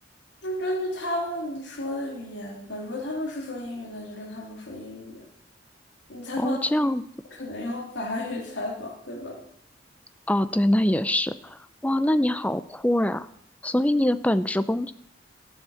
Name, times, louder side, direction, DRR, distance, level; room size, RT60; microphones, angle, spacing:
voice 1, 0.4-5.3 6.1-6.6 7.3-9.4, left 1 dB, 70° left, 0 dB, 3.0 m, -33 dB
voice 2, 6.4-7.0 10.3-13.3 13.6-14.9, left 1 dB, 10° left, 13 dB, 0.5 m, -24 dB
13.5 x 7.3 x 7.0 m, 0.69 s
head